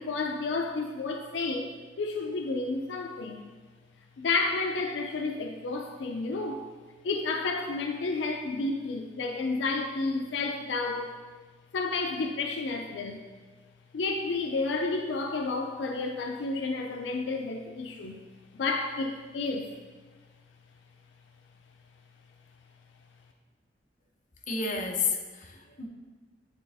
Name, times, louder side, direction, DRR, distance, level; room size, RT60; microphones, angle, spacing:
voice 1, 0.0-3.4 4.2-6.6 7.0-11.2 11.7-13.2 13.9-18.2 18.5-19.7, left 3 dB, 80° left, 3 dB, 0.4 m, -31 dB
voice 2, 24.5-25.9, left 4 dB, 45° left, 2 dB, 0.7 m, -31 dB
8.6 x 3.4 x 3.4 m, 1.4 s
head